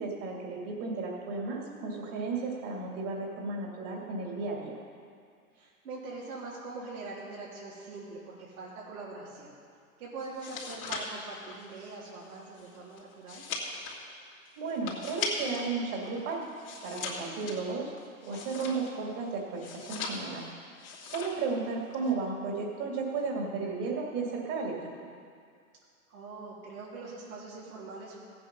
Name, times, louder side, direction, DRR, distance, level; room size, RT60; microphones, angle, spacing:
voice 1, 0.0-4.8 14.6-16.4 16.8-17.9 18.2-20.5 21.0-25.1, right 4 dB, 45° right, -2 dB, 2.7 m, -34 dB
voice 2, 1.6-2.0 5.5-9.5 10.0-13.5 17.2-17.6 26.1-28.2, right 3 dB, 80° right, -7 dB, 3.7 m, -43 dB
sound 1, 10.2-15.7 16.0-19.1 19.6-20.5 20.8-21.5 21.7-22.1, left 4 dB, 70° left, 2.8 m, -39 dB
15.5 x 8.7 x 5.5 m, 2.2 s
hypercardioid pair, 135°, 43 cm